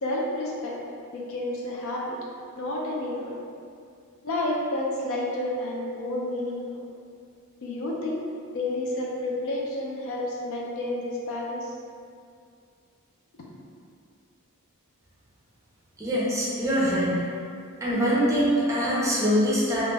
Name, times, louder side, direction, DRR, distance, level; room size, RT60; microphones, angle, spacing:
voice 1, 0.0-0.8 1.1-2.2 2.5-3.4 4.2-6.8 7.6-8.2 8.5-11.7 13.5-13.6, left 1 dB, 60° left, -3 dB, 0.4 m, -30 dB
voice 2, 16.0-17.2 17.8-19.8, equal, 15° right, -8 dB, 0.5 m, -23 dB
2.3 x 2.0 x 3.3 m, 2.3 s
head